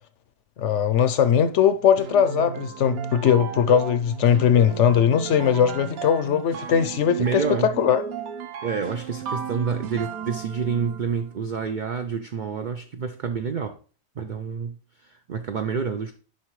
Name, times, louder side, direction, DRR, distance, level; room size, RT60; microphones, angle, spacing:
voice 1, 0.6-8.0, left 8 dB, 65° left, 0.8 m, -20 dB
sound 1, 2.0-11.2, right 7 dB, 90° right, 1.2 m, -35 dB
voice 2, 7.2-7.7 8.6-13.8 14.2-16.1, right 6 dB, 70° right, 0.4 m, -28 dB
7.2 x 5.5 x 3.1 m
omnidirectional pair, 1.5 m